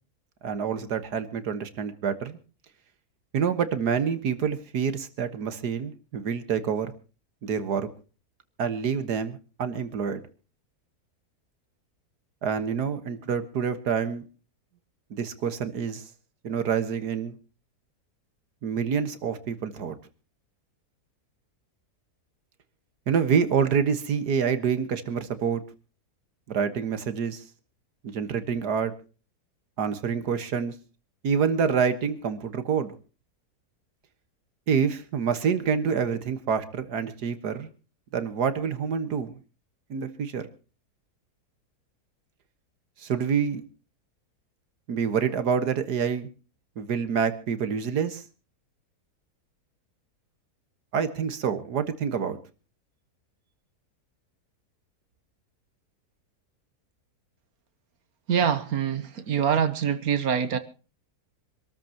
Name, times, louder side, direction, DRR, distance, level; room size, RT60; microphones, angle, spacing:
voice 1, 0.4-2.4 3.3-6.9 7.4-7.9 8.6-10.2 12.4-14.2 15.1-16.0 16.4-17.3 18.6-20.0 23.1-25.6 26.5-27.4 28.0-28.9 29.8-30.7 31.2-32.9 34.7-37.7 38.1-39.3 39.9-40.5 43.0-43.6 44.9-46.3 46.8-48.2 50.9-52.4, right 6 dB, 85° right, 1.9 m, -27 dB
voice 2, 58.3-60.6, right 8 dB, 65° right, 1.4 m, -25 dB
26.0 x 13.5 x 2.9 m
omnidirectional pair, 1.7 m